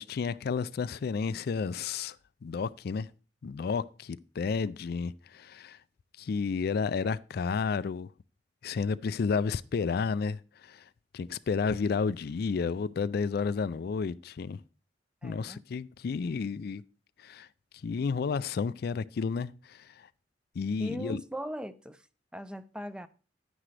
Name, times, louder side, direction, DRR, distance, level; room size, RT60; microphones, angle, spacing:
voice 1, 0.0-2.2 2.4-3.1 3.4-5.8 6.2-8.1 8.6-10.8 11.1-14.6 15.2-16.8 17.2-17.5 17.8-20.1 20.6-21.2, left 5 dB, 60° left, 0.4 m, -31 dB
voice 2, 15.2-15.6 20.8-22.0 22.3-23.1, equal, 5° right, 0.5 m, -39 dB
10.5 x 9.7 x 3.3 m
head